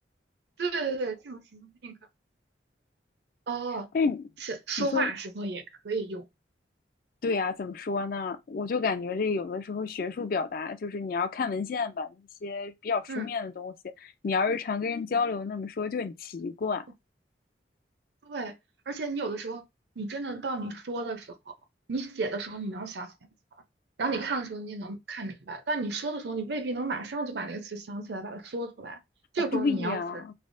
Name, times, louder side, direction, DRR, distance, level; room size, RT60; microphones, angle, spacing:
voice 1, 0.6-2.0 3.5-3.9 4.4-6.2 13.1-13.3 18.3-18.5 18.9-19.6 20.0-21.4 21.9-23.1 24.0-29.0 29.3-30.2, right 3 dB, 65° right, 0.6 m, -33 dB
voice 2, 3.9-4.3 4.8-5.1 7.2-16.9 29.5-30.3, left 4 dB, 50° left, 0.3 m, -30 dB
3.3 x 2.0 x 2.6 m
head